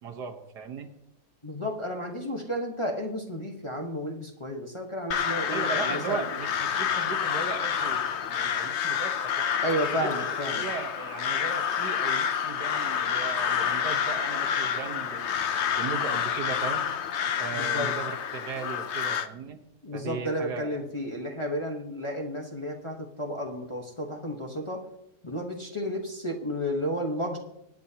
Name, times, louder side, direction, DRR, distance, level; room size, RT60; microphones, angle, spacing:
voice 1, 0.0-0.9 5.5-9.5 10.0-15.4 15.8-16.9 17.4-19.6 19.9-20.8, right 5 dB, 75° right, 4 dB, 1.7 m, -37 dB
voice 2, 1.4-6.3 9.6-10.6 17.5-18.0 19.8-24.8 25.2-27.4, equal, 20° left, 0 dB, 1.0 m, -32 dB
Crow, 5.1-19.3, left 8 dB, 60° left, 0.8 m, -28 dB
24.0 x 9.2 x 2.8 m, 0.84 s
omnidirectional pair, 1.8 m